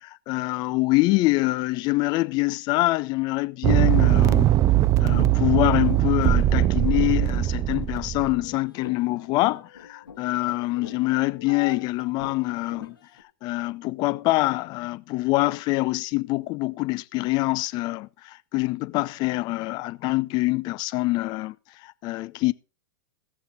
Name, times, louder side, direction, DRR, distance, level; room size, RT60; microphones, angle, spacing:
voice 1, 0.0-4.6 5.0-13.0 13.4-21.5 21.8-22.5, left 21 dB, 40° left, 0.6 m, -25 dB
sound 1, 3.6-8.3, right 13 dB, 30° right, 0.5 m, -20 dB
sound 2, 8.1-13.2, left 8 dB, 90° left, 2.2 m, -43 dB
17.0 x 7.0 x 4.1 m
hypercardioid pair, 115°, 11 cm